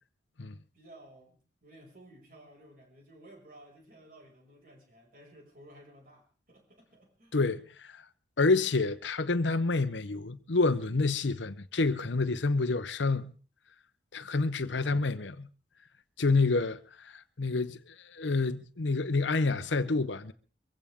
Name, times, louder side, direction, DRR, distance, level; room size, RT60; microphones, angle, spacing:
voice 1, 0.7-7.4 14.7-15.2, right 1 dB, 50° right, 5.8 m, -55 dB
voice 2, 7.3-7.9 8.4-13.3 14.1-15.5 16.2-16.8 17.0-20.3, left 3 dB, 85° left, 0.8 m, -28 dB
23.5 x 16.0 x 3.6 m
head